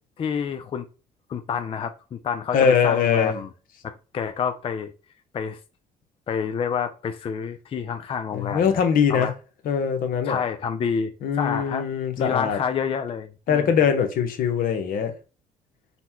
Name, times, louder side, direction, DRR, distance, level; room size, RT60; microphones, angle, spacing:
voice 1, 0.2-0.9 1.3-2.6 2.8-3.5 3.8-4.9 5.3-5.6 6.3-8.8 9.1-9.3 10.2-11.9 12.2-13.7, left 7 dB, 35° left, 0.4 m, -28 dB
voice 2, 2.5-3.4 8.3-9.3 9.6-10.4 11.2-12.6 13.5-15.2, left 7 dB, 65° left, 0.8 m, -22 dB
4.0 x 2.2 x 4.3 m
cardioid pair, 90°, 15 cm